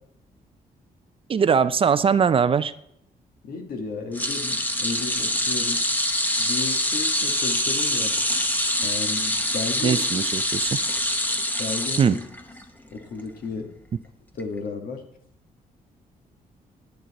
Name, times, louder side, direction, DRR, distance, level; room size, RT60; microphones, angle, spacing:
voice 1, 1.3-2.7 9.8-10.8 12.0-12.2, right 6 dB, 35° right, 14 dB, 0.4 m, -21 dB
voice 2, 3.4-5.8 6.4-8.1 8.8-10.0 11.6-12.2 12.9-13.7 14.4-15.0, left 4 dB, 75° left, 4 dB, 1.7 m, -33 dB
sound 1, 4.1-12.6 13.0-13.2 14.4-14.5, left 1 dB, 10° left, 0.9 m, -25 dB
10.5 x 10.0 x 4.2 m, 0.75 s
cardioid pair, 125°, 15 cm